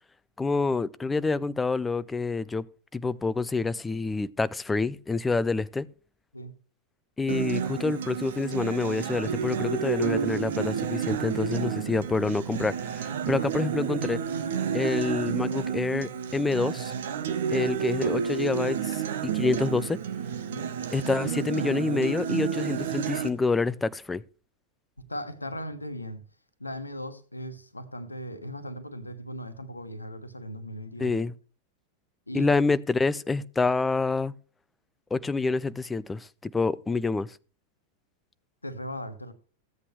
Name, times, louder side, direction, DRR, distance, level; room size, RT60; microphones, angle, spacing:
voice 1, 0.4-2.6 2.9-5.9 7.2-14.2 14.7-16.9 17.5-20.0 20.9-24.2 31.0-31.3 32.3-34.3 35.1-37.4, left 3 dB, 10° left, 0.5 m, -27 dB
Acoustic guitar, 7.3-23.3, right 7 dB, 60° right, 0.9 m, -30 dB
voice 2, 25.1-26.2 26.6-31.2 32.3-32.5 38.6-39.3, equal, 85° left, 1.2 m, -38 dB
15.0 x 8.4 x 3.3 m
figure-of-eight pair, 90°, 0 cm